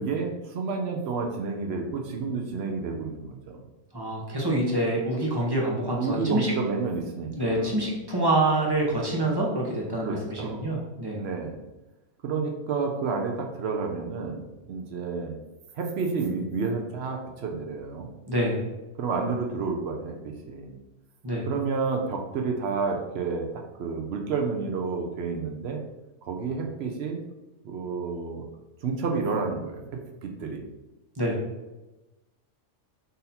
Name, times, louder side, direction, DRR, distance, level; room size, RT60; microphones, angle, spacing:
voice 1, 0.0-3.6 6.0-7.7 10.0-10.6 11.2-11.6 12.2-15.4 15.7-18.1 19.0-20.7 21.5-25.8 26.2-27.2 27.6-28.5 28.8-30.6, right 4 dB, 65° right, 2 dB, 0.8 m, -30 dB
voice 2, 3.9-6.5 7.3-11.2 18.3-18.6 21.2-21.5 31.2-31.4, right 1 dB, 20° right, -3 dB, 0.8 m, -26 dB
4.0 x 2.7 x 4.1 m, 1.1 s
omnidirectional pair, 1.3 m